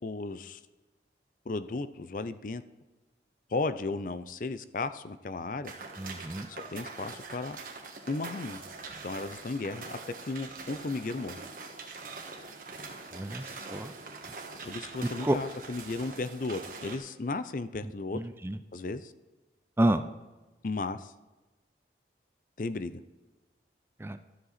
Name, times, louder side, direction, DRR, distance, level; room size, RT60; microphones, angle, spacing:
voice 1, 0.0-0.6 1.5-2.6 3.5-5.7 6.5-7.6 8.1-8.6 9.0-11.4 14.6-18.2 18.7-19.1 20.6-21.1 22.6-23.0, left 3 dB, 50° left, 13 dB, 0.5 m, -35 dB
sound 1, 5.6-17.0, right 4 dB, 50° right, 1.5 m, -43 dB
voice 2, 6.0-6.5 13.1-13.4 13.7-13.9 15.2-15.4 18.1-18.6 19.8-20.0 24.0-24.2, right 1 dB, 15° right, 11 dB, 0.4 m, -28 dB
13.0 x 7.7 x 4.1 m, 1.1 s
head